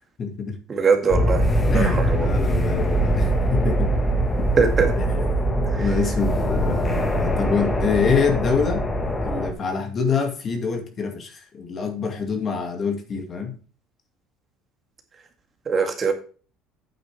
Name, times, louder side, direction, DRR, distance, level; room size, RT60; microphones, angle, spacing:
voice 1, 0.2-0.6 1.7-3.9 4.4-4.5 5.3-8.8 9.2-13.6, left 5 dB, 35° left, 5 dB, 2.3 m, -26 dB
voice 2, 0.7-2.3 4.6-4.9 5.7-5.9 15.7-16.1, right 5 dB, 30° right, 5 dB, 2.0 m, -22 dB
sound 1, 1.1-9.5, right 1 dB, 15° left, 1.8 m, -22 dB
9.1 x 8.1 x 3.5 m, 0.38 s
cardioid pair, 130°, 0 cm